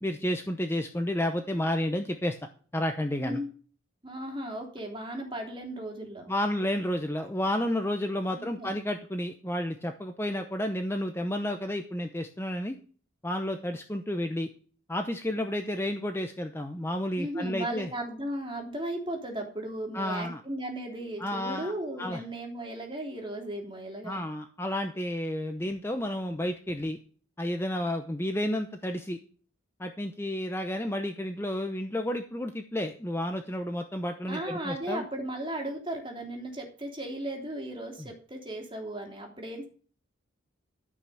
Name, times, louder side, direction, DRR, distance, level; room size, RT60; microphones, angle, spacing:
voice 1, 0.0-2.4 2.7-3.4 6.3-12.8 13.2-14.5 14.9-17.9 19.9-20.4 21.2-21.7 22.0-22.2 24.0-27.0 27.4-29.2 29.8-35.0, left 1 dB, 10° left, 5 dB, 0.7 m, -31 dB
voice 2, 4.0-6.3 8.3-8.8 17.2-24.3 34.3-39.7, right 1 dB, 25° right, 2 dB, 3.2 m, -36 dB
13.5 x 6.0 x 7.0 m, 0.42 s
head